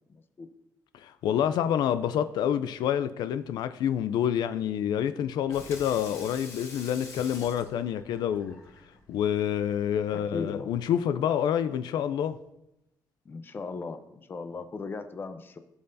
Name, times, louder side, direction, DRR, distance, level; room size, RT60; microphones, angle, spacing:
voice 1, 0.1-0.5 10.1-10.7 13.2-15.6, left 4 dB, 30° left, 0.7 m, -38 dB
voice 2, 0.9-8.6 9.1-12.4, left 9 dB, 90° left, 0.4 m, -28 dB
Water tap faucet / Sink (filling or washing), 5.3-10.8, left 3 dB, 45° left, 3.3 m, -47 dB
16.5 x 5.6 x 2.7 m
cardioid pair, 150°, 7 cm